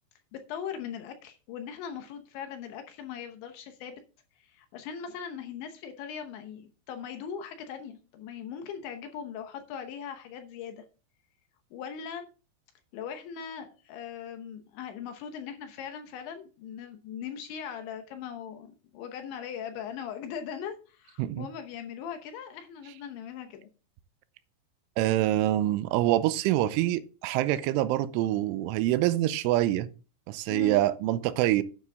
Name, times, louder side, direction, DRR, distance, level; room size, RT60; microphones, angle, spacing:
voice 1, 0.3-4.0 4.4-10.8 11.7-12.3 12.9-23.7 30.5-30.8, left 8 dB, 75° left, 3.1 m, -40 dB
voice 2, 25.0-29.9 30.3-31.6, right 14 dB, 80° right, 3.0 m, -25 dB
9.7 x 9.7 x 3.5 m
omnidirectional pair, 5.8 m